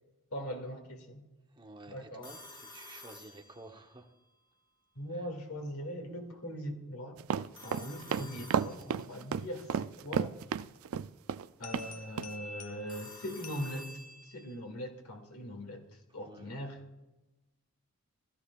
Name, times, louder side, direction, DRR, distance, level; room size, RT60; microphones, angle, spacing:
voice 1, 0.3-1.2 1.9-2.3 5.0-7.2 7.6-10.4 11.6-16.8, equal, 85° left, 2 dB, 2.1 m, -41 dB
voice 2, 1.5-4.1 5.1-5.3 16.2-16.6, right 2 dB, 20° right, 4 dB, 0.9 m, -52 dB
Telephone, 2.2-4.0 7.5-9.2 12.9-14.6, left 2 dB, 20° left, 1.4 m, -51 dB
sound 1, 7.2-11.5 11.7-11.9 12.2-12.3, right 7 dB, 65° right, 0.3 m, -32 dB
sound 2, 11.6-14.6, left 1 dB, 35° left, 1.0 m, -49 dB
16.0 x 13.5 x 2.4 m, 1.0 s
head